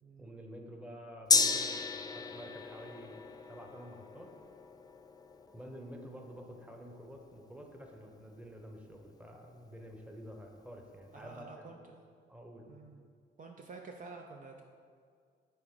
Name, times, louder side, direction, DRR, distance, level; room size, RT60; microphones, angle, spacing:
voice 1, 0.2-4.3 5.5-11.7 12.3-12.8, equal, 5° right, 2 dB, 1.0 m, -49 dB
Gong, 1.3-9.1 9.4-9.5, left 4 dB, 20° left, 0.5 m, -35 dB
voice 2, 11.1-12.0 12.7-14.6, right 4 dB, 40° right, 2 dB, 0.5 m, -50 dB
9.9 x 3.6 x 3.8 m, 2.1 s
cardioid pair, 90°, 20 cm